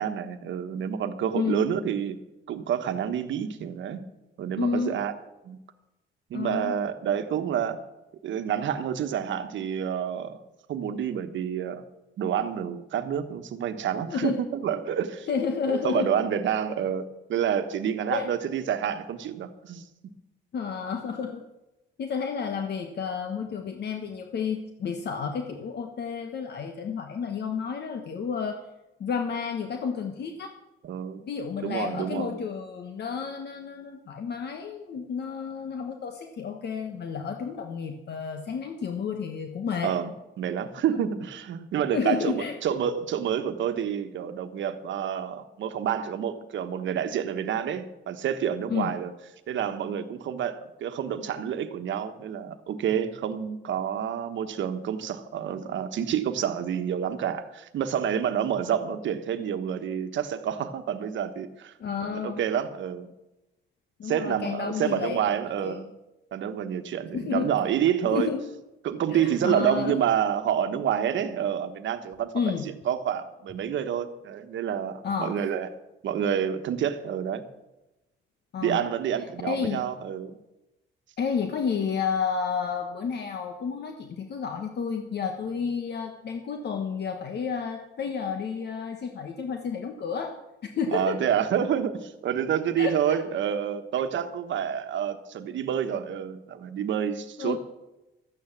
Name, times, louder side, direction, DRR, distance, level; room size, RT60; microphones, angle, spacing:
voice 1, 0.0-2.2 2.5-4.1 4.4-5.1 5.4-5.6 6.3-7.8 8.2-10.4 10.7-11.8 12.2-15.3 15.7-19.8 30.8-31.2 31.6-32.4 39.8-49.1 49.5-61.7 62.1-63.1 64.0-65.9 66.3-68.3 68.8-72.3 72.8-75.7 76.0-77.4 78.6-80.4 90.9-97.6, right 9 dB, 70° right, 9 dB, 1.2 m, -28 dB
voice 2, 1.3-1.8 4.6-5.0 6.3-6.8 14.1-14.4 15.3-16.1 18.1-18.3 20.5-21.4 22.0-28.6 29.0-30.5 31.3-39.9 40.9-41.0 41.9-42.5 48.7-49.0 61.8-62.4 64.0-65.2 65.6-65.8 67.1-67.5 68.1-68.4 69.1-70.0 72.3-72.7 75.0-75.4 78.5-78.8 79.4-79.8 81.2-90.3 90.6-91.2 92.8-93.2 97.4-97.6, left 6 dB, 55° left, 4 dB, 1.3 m, -31 dB
12.5 x 9.1 x 7.3 m, 0.99 s
cardioid pair, 90°, 20 cm